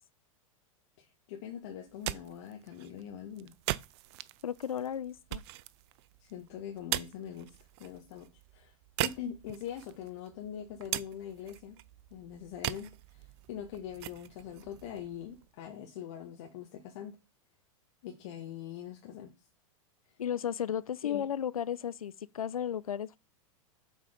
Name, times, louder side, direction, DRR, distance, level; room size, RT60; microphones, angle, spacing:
voice 1, 1.0-3.5 6.2-7.5 7.8-8.3 8.5-8.7 9.0-11.8 12.1-17.2 18.0-19.3 21.0-21.2, left 9 dB, 55° left, 1.5 m, -43 dB
sound 1, 1.8-15.7, right 16 dB, 50° right, 0.5 m, -41 dB
voice 2, 4.4-5.4 20.2-23.2, left 9 dB, 90° left, 0.4 m, -34 dB
7.6 x 4.1 x 5.0 m
hypercardioid pair, 105°, 18 cm